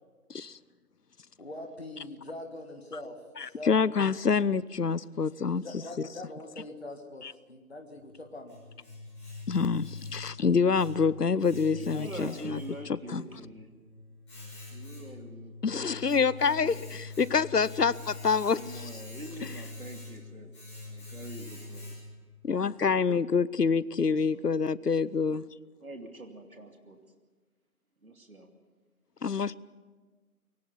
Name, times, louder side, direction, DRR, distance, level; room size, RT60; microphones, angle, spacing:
voice 1, 1.4-3.8 5.5-8.7 11.9-12.4, left 2 dB, 40° left, 1.7 m, -43 dB
voice 2, 3.4-5.8 7.2-7.3 9.5-12.6 13.1-13.2 15.6-18.9 22.4-25.4 29.2-29.5, left 5 dB, 80° left, 0.8 m, -27 dB
Domestic sounds home sounds, 8.0-22.3, left 3 dB, 20° left, 6.5 m, -44 dB
voice 3, 11.7-13.7 14.7-15.5 16.6-16.8 18.5-20.5 20.8-21.8 23.9-24.5 25.8-27.0 28.0-28.5, right 1 dB, 60° right, 2.8 m, -44 dB
23.0 x 17.5 x 7.1 m
figure-of-eight pair, 165°, 46 cm